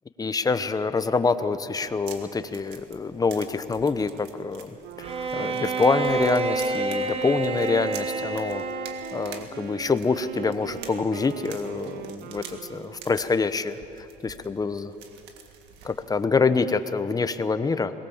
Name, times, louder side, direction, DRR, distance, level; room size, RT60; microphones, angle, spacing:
voice 1, 0.2-4.7 5.0-8.6 9.1-12.4 12.7-14.9 15.8-17.9, left 4 dB, 20° left, 11 dB, 1.0 m, -26 dB
sound 1, 1.7-16.2, right 7 dB, 90° right, 1.9 m, -47 dB
Wind instrument woodwind instrument, 4.8-13.4, right 12 dB, 75° right, 0.7 m, -40 dB
Bowed string instrument, 5.0-9.5, right 3 dB, 35° right, 1.3 m, -28 dB
22.0 x 19.5 x 7.3 m, 2.7 s
cardioid pair, 110°, 17 cm